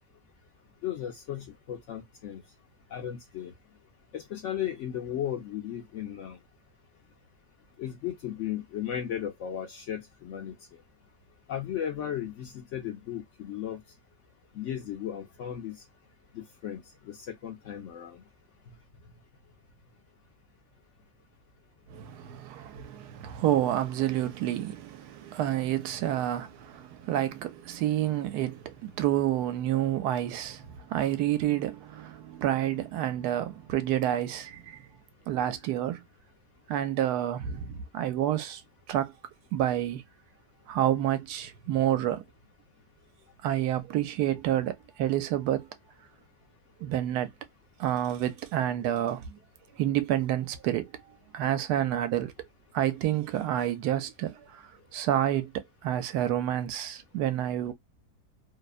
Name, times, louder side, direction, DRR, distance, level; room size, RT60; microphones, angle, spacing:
voice 1, 0.8-2.4 2.9-3.5 4.1-6.4 7.8-10.5 11.5-13.8 14.5-15.8 16.3-18.2, left 10 dB, 70° left, 0.7 m, -35 dB
voice 2, 21.9-34.8 35.3-36.0 36.7-38.6 38.9-39.1 39.5-40.0 40.7-42.2 43.4-45.7 46.8-47.3 47.8-49.4 49.8-50.9 51.3-52.3 52.7-54.6 54.9-55.5 55.8-57.7, right 12 dB, 80° right, 1.1 m, -29 dB
2.8 x 2.1 x 2.3 m
omnidirectional pair, 1.7 m